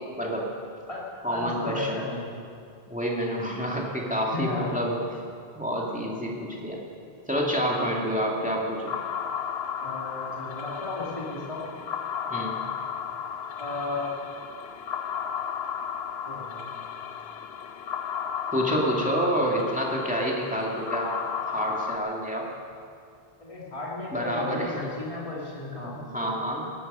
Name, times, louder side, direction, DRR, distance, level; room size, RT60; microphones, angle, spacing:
voice 1, 0.2-0.5 1.2-2.0 2.9-5.0 5.5-6.8 7.3-9.0 12.3-12.5 18.5-21.2 21.4-22.5 24.1-24.9 25.9-26.7, equal, 5° right, -3 dB, 2.3 m, -28 dB
voice 2, 0.9-2.3 4.3-4.8 7.5-7.8 9.8-11.6 13.6-14.1 16.3-16.7 23.4-25.9, left 3 dB, 30° left, -6 dB, 2.7 m, -34 dB
sound 1, 8.9-22.0, left 7 dB, 75° left, 0.9 m, -34 dB
18.5 x 13.0 x 5.5 m, 2.4 s
omnidirectional pair, 1.1 m